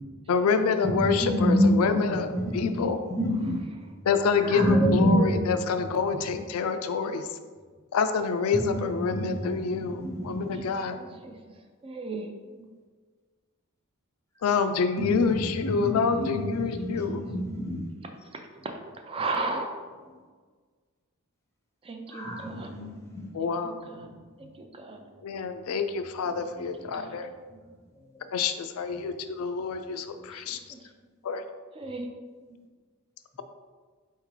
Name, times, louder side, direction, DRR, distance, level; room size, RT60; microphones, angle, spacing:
voice 1, 0.3-2.3 2.5-3.0 4.1-7.3 7.9-11.0 14.4-17.2 23.3-23.9 25.2-27.3 28.3-30.6 31.2-31.4, left 5 dB, 75° left, 9 dB, 0.4 m, -27 dB
voice 2, 0.8-4.0 4.4-5.9 8.5-10.6 15.0-17.9 22.1-23.3 23.9-24.0, equal, 15° left, -1 dB, 0.7 m, -27 dB
voice 3, 10.8-11.4 11.8-12.3 16.9-17.0 18.6-18.7 19.0-19.7 21.9-22.7 23.6-23.7 24.0-24.1 24.6-25.0 26.8-27.2 30.3-30.4 30.7-30.8 31.8-32.1, right 3 dB, 25° right, 4 dB, 0.4 m, -35 dB
4.5 x 3.6 x 3.2 m, 1.5 s
head